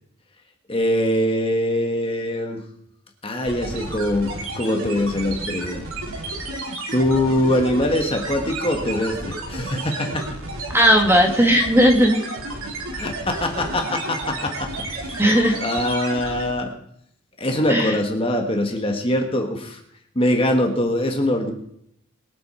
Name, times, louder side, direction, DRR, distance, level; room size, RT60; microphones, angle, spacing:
voice 1, 0.7-2.6 3.2-5.8 6.9-10.3 12.9-14.7 15.0-15.2 15.6-16.7 17.4-19.8 20.1-21.5, left 1 dB, 25° left, 3 dB, 1.7 m, -23 dB
sound 1, 3.5-16.6, right 2 dB, 85° right, 3.0 m, -32 dB
voice 2, 10.7-12.2 15.2-15.6 17.7-18.0, equal, 10° right, 2 dB, 1.8 m, -16 dB
22.5 x 8.4 x 4.4 m, 0.71 s
head